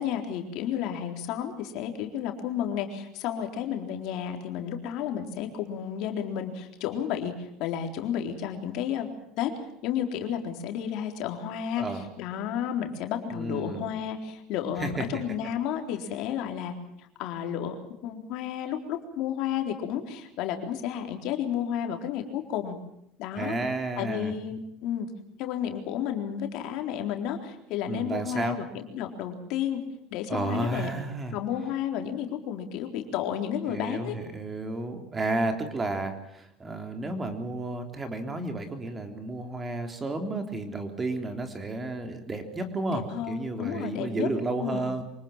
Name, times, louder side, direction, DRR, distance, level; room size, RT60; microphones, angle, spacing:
voice 1, 0.0-9.1 9.4-9.5 9.8-11.8 12.2-17.8 18.0-22.8 23.2-23.5 24.0-25.1 25.4-29.8 30.1-30.9 31.3-34.1 42.9-44.3 44.6-44.9, left 9 dB, 65° left, 4 dB, 4.0 m, -32 dB
voice 2, 11.8-12.1 13.3-13.8 14.8-15.2 23.4-24.3 27.9-28.6 30.3-31.4 33.7-45.0, right 2 dB, 20° right, 6 dB, 3.6 m, -32 dB
25.5 x 19.0 x 7.5 m, 0.76 s
supercardioid pair, 115°, 0 cm